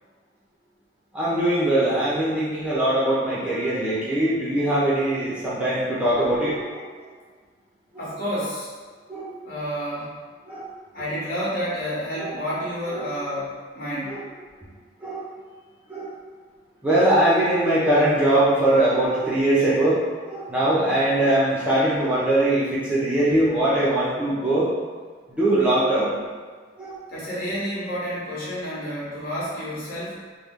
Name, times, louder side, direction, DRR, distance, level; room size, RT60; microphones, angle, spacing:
voice 1, 1.1-6.8 9.1-9.3 10.5-10.6 12.2-12.4 12.9-13.0 14.1-14.2 15.0-15.2 15.9-16.1 16.8-20.0 20.3-24.7 25.3-26.1 26.8-27.0, right 1 dB, 5° right, -9 dB, 0.6 m, -21 dB
voice 2, 8.0-8.7 9.4-10.1 10.9-14.2 27.1-30.2, equal, 50° left, -9 dB, 1.2 m, -30 dB
3.2 x 2.1 x 3.6 m, 1.5 s
head